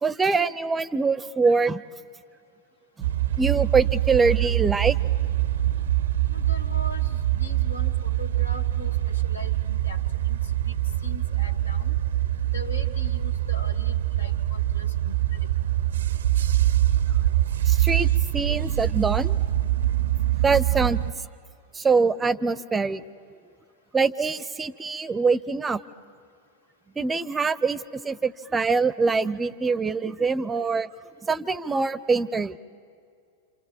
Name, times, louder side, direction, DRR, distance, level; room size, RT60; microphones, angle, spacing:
voice 1, 0.0-1.8 3.4-5.0 17.7-18.1 18.3-19.4 20.4-21.0 21.7-23.0 23.9-25.8 27.0-30.9 31.2-32.6, right 4 dB, 15° right, 19 dB, 0.6 m, -24 dB
sound 1, 3.0-21.1, right 13 dB, 65° right, 0.6 m, -24 dB
voice 2, 6.3-10.8 11.0-12.0 12.5-15.5, left 2 dB, 80° left, 5 dB, 1.6 m, -41 dB
28.0 x 27.5 x 7.2 m, 2.3 s
figure-of-eight pair, 90°, 0 cm